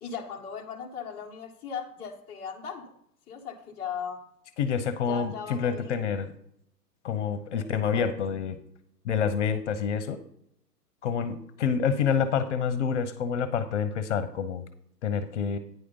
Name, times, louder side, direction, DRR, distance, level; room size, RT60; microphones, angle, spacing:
voice 1, 0.0-2.9 3.3-4.2 5.1-6.0 7.5-7.7 7.9-8.1, left 7 dB, 10° left, -2 dB, 0.8 m, -38 dB
voice 2, 4.6-6.3 7.0-8.6 9.0-10.2 11.0-14.6 15.0-15.6, left 7 dB, 45° left, 12 dB, 0.9 m, -27 dB
9.5 x 5.0 x 5.4 m, 0.70 s
hypercardioid pair, 130°, 49 cm